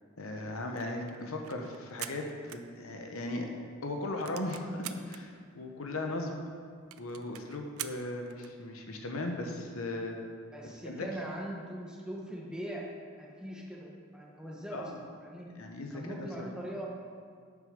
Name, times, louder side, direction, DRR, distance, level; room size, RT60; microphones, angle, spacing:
voice 1, 0.2-3.5 3.8-6.3 7.0-10.2 10.8-11.1 14.7-15.0 15.5-16.5, left 2 dB, 80° left, 3 dB, 1.0 m, -37 dB
sound 1, 0.6-3.3 3.6-3.7 4.0-5.2 5.8-5.9 6.1-6.2 6.5-6.6 6.9-8.6, right 13 dB, 80° right, 0.4 m, -45 dB
voice 2, 10.5-12.9 13.2-14.9 15.2-15.5 15.9-16.9, right 1 dB, 5° right, -3 dB, 1.0 m, -41 dB
7.4 x 6.5 x 5.2 m, 2.1 s
head